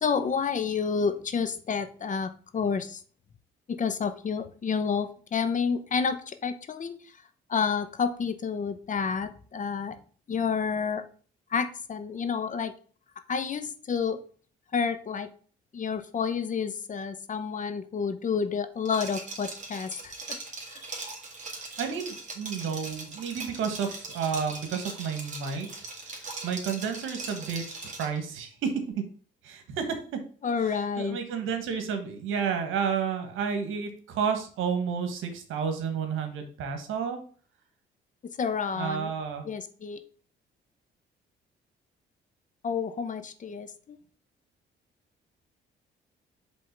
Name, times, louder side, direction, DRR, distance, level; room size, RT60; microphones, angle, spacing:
voice 1, 0.0-3.0 3.7-7.0 7.5-10.0 10.3-11.0 11.5-12.7 13.3-14.2 14.7-15.3 15.7-20.4 20.7-20.8 30.4-31.2 38.4-39.1 39.4-40.0 42.6-44.0, left 6 dB, 40° left, 10 dB, 0.8 m, -29 dB
Liquid, 18.9-28.2, right 3 dB, 35° right, 2.1 m, -40 dB
voice 2, 21.8-25.7 26.1-27.6 28.0-28.7 29.4-29.9 31.0-37.2 38.8-39.4, right 6 dB, 85° right, 6 dB, 1.4 m, -31 dB
5.4 x 3.6 x 5.8 m, 0.43 s
cardioid pair, 90°, 20 cm